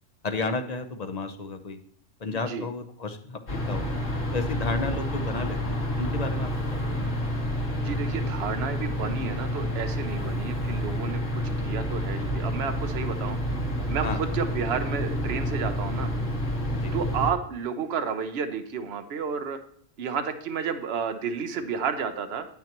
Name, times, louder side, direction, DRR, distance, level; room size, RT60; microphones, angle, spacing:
voice 1, 0.2-1.8 2.2-4.0 4.3-7.2 14.0-14.3 16.7-16.9, left 3 dB, 40° left, 7 dB, 0.7 m, -33 dB
voice 2, 2.3-2.7 7.7-11.2 11.6-13.4 13.9-16.1 16.9-19.6 20.0-22.5, right 6 dB, 60° right, 7 dB, 1.0 m, -31 dB
sound 1, 3.5-17.3, equal, 80° left, 2.0 m, -29 dB
9.2 x 9.2 x 3.0 m, 0.62 s
omnidirectional pair, 1.3 m